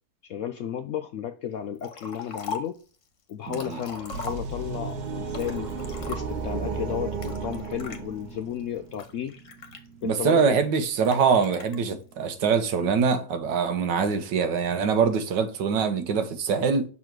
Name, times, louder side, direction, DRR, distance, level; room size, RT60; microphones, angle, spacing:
voice 1, 0.2-2.8 3.3-5.7 6.1-9.4 10.0-10.6, left 9 dB, 75° left, 0.7 m, -33 dB
Liquid, 1.8-2.8 3.3-4.8 5.3-6.5 7.2-8.0 8.6-10.3 11.0-11.8, left 4 dB, 50° left, 1.2 m, -39 dB
voice 2, 3.5-3.8 10.0-16.9, right 6 dB, 90° right, 1.6 m, -24 dB
sound 1, 3.9-8.6, right 5 dB, 50° right, 0.5 m, -34 dB
sound 2, 4.1-11.6 12.3-12.4, right 2 dB, 70° right, 1.4 m, -42 dB
6.2 x 4.2 x 4.5 m
omnidirectional pair, 1.8 m